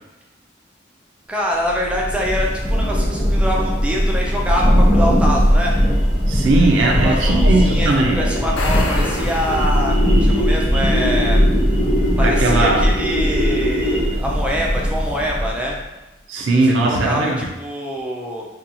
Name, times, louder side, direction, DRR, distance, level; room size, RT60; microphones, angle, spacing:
voice 1, 1.3-5.7 6.8-7.9 8.1-11.5 12.2-15.8 16.8-18.5, equal, 5° right, -2 dB, 0.3 m, -25 dB
Thunder / Rain, 1.7-15.8, equal, 55° left, 0.9 m, -19 dB
sound 1, 5.7-14.3, equal, 20° left, 0.9 m, -25 dB
voice 2, 6.3-8.2 12.2-12.9 16.3-17.5, right 2 dB, 75° right, 0 dB, 0.4 m, -18 dB
sound 2, 8.4-10.3, left 3 dB, 80° left, 0.4 m, -30 dB
2.8 x 2.3 x 2.5 m, 1.0 s
head